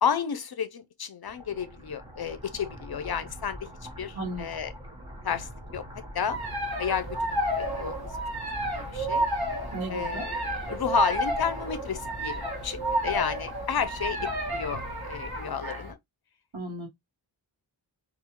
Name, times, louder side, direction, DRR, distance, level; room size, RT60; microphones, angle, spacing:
voice 1, 0.0-3.7 4.0-4.7 5.2-5.8 6.1-6.4 6.8-8.1 8.7-9.3 9.9-16.0, left 7 dB, 55° left, 0.5 m, -32 dB
sound 1, 1.2-15.4, equal, 10° right, 0.9 m, -43 dB
voice 2, 4.1-4.5 9.7-10.3 16.5-16.9, right 1 dB, 80° right, 1.1 m, -34 dB
sound 2, 6.3-15.9, right 1 dB, 50° right, 1.0 m, -31 dB
2.4 x 2.3 x 2.8 m
wide cardioid pair, 50°, 47 cm